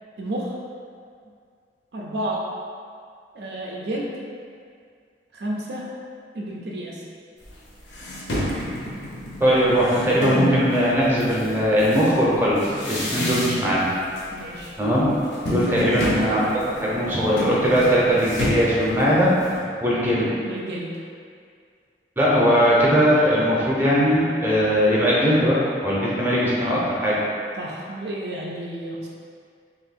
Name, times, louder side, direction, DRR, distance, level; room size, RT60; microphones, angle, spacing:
voice 1, 0.2-0.5 1.9-2.4 3.3-4.3 5.3-5.9 6.3-7.1 14.3-14.7 15.6-15.9 20.4-20.9 27.6-29.1, right 1 dB, 65° right, -3 dB, 0.5 m, -31 dB
sound 1, 7.4-7.5 7.9-10.6 11.2-13.9 14.1-14.6 14.9-19.6, left 1 dB, 75° left, 0.8 m, -29 dB
voice 2, 9.4-13.9 14.8-15.1 15.5-19.3 19.8-20.3 22.2-27.2, equal, 10° right, -7 dB, 0.7 m, -20 dB
3.0 x 2.6 x 4.2 m, 2.2 s
head